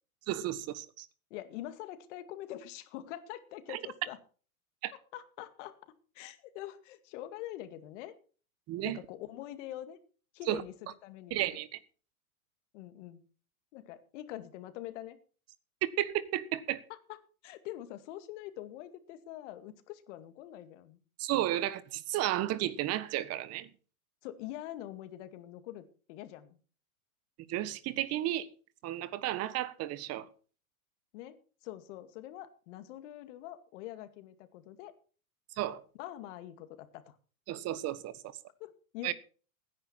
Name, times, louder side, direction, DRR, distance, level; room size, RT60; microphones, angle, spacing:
voice 1, 0.3-1.1 4.8-4.9 8.7-9.0 10.5-10.6 11.3-11.7 16.0-16.8 21.2-23.7 27.5-28.5 28.8-30.3 35.6-35.8 37.5-38.1 39.0-39.1, right 14 dB, 35° right, 1.4 m, -33 dB
voice 2, 1.3-4.2 5.1-8.1 8.8-10.0 10.3-11.6 12.7-13.2 13.7-15.2 16.9-17.2 17.4-21.0 24.2-26.6 31.1-31.4 31.6-34.9 36.0-37.2 38.6-39.1, left 13 dB, 55° left, 2.3 m, -44 dB
16.5 x 10.0 x 4.3 m
hypercardioid pair, 115°, 43 cm